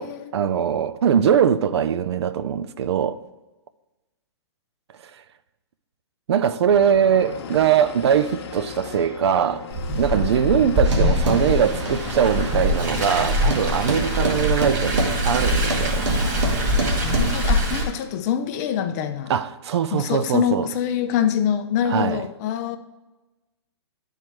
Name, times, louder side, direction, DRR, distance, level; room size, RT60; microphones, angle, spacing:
voice 1, 0.3-3.2 6.3-9.6 9.9-16.1 19.3-20.7 21.9-22.2, right 8 dB, 65° right, 0.5 m, -21 dB
sound 1, 6.7-14.2, left 6 dB, 60° left, 1.1 m, -36 dB
Car, 9.7-17.8, equal, 25° right, 2.2 m, -23 dB
sound 2, 10.8-17.3, right 2 dB, 90° right, 1.8 m, -28 dB
voice 2, 16.6-19.3 19.9-22.8, left 9 dB, 35° left, 0.6 m, -25 dB
10.5 x 4.6 x 4.6 m
hypercardioid pair, 145°, 15 cm